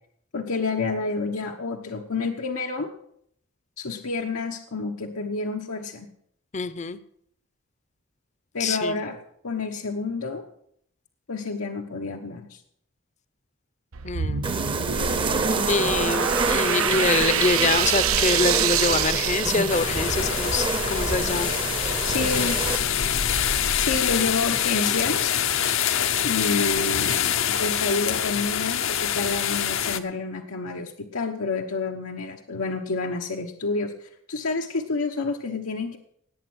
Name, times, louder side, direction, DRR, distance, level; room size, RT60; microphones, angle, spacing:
voice 1, 0.3-2.9 3.8-6.1 8.5-9.2 9.4-10.4 11.3-12.6 22.0-22.6 23.8-25.4 26.2-36.0, left 3 dB, 85° left, 1 dB, 1.1 m, -29 dB
voice 2, 6.5-7.0 8.6-9.0 14.0-14.5 15.7-21.5 22.3-22.5, left 4 dB, 35° left, 14 dB, 0.7 m, -25 dB
sound 1, 13.9-20.2, right 8 dB, 80° right, 0.8 m, -26 dB
sound 2, 14.4-22.8, right 3 dB, 25° right, 0.8 m, -27 dB
sound 3, 19.7-30.0, left 9 dB, 65° left, 0.8 m, -25 dB
18.5 x 8.6 x 6.3 m, 0.69 s
head